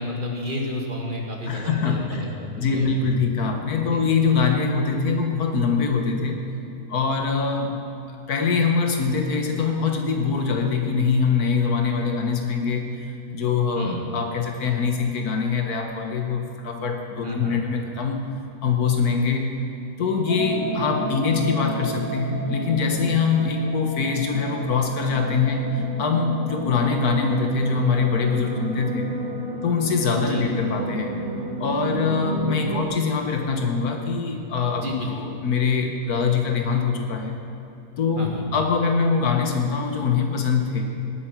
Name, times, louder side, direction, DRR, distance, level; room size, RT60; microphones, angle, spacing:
voice 1, 0.0-2.3 2.5-2.9 3.9-4.0 13.8-14.1 17.2-17.6 30.2-30.5 34.8-35.1 38.2-38.5, left 1 dB, 35° right, 0 dB, 2.1 m, -31 dB
voice 2, 1.5-2.3 2.6-6.4 6.9-7.8 8.1-18.3 18.6-19.5 20.0-29.1 29.6-37.4 38.0-40.9, left 5 dB, 85° left, 3 dB, 1.8 m, -23 dB
sound 1, 20.3-32.8, right 2 dB, 65° right, 1.9 m, -31 dB
19.0 x 8.8 x 6.0 m, 3.0 s
omnidirectional pair, 1.6 m